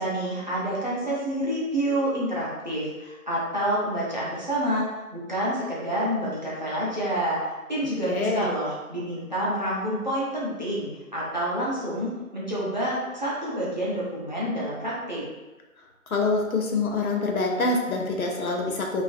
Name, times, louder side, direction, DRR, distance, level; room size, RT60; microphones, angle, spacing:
voice 1, 0.0-7.4 7.7-15.2, right 1 dB, 35° right, -7 dB, 0.5 m, -28 dB
voice 2, 8.1-8.5 16.1-19.0, left 3 dB, 75° left, 1 dB, 0.6 m, -25 dB
2.4 x 2.3 x 2.5 m, 1.1 s
figure-of-eight pair, 145°, 43 cm